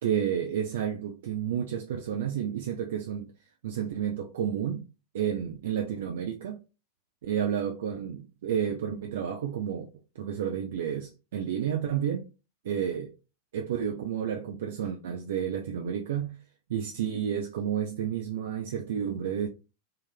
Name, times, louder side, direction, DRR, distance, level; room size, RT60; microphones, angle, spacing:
voice 1, 0.0-3.3 3.6-4.8 5.1-6.6 7.2-9.9 10.2-12.3 12.6-13.1 13.5-16.4 16.7-19.5, right 9 dB, 60° right, 0.4 m, -31 dB
3.7 x 2.5 x 3.3 m
figure-of-eight pair, 90°, 0 cm